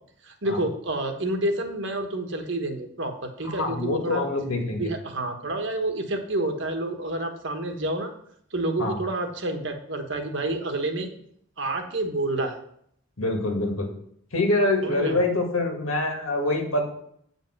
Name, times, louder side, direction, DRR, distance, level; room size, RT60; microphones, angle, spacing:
voice 1, 0.2-4.2 4.8-8.1 8.5-11.1 11.6-12.5 14.8-15.2, right 2 dB, 60° right, 5 dB, 1.3 m, -29 dB
voice 2, 3.4-4.9 8.8-9.0 13.2-13.9 14.3-16.8, left 2 dB, 75° left, 2 dB, 1.9 m, -25 dB
8.6 x 5.5 x 6.0 m, 0.67 s
head